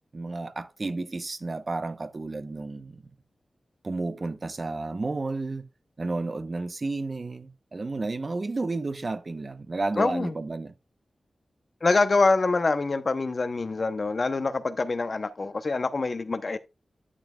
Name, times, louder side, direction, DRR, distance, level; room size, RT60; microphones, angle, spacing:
voice 1, 0.1-3.0 3.8-5.7 6.0-10.7, right 3 dB, 50° right, 0.8 m, -32 dB
voice 2, 10.0-10.3 11.8-16.6, left 3 dB, 55° left, 0.8 m, -25 dB
11.0 x 7.0 x 2.3 m
cardioid pair, 45°, 0 cm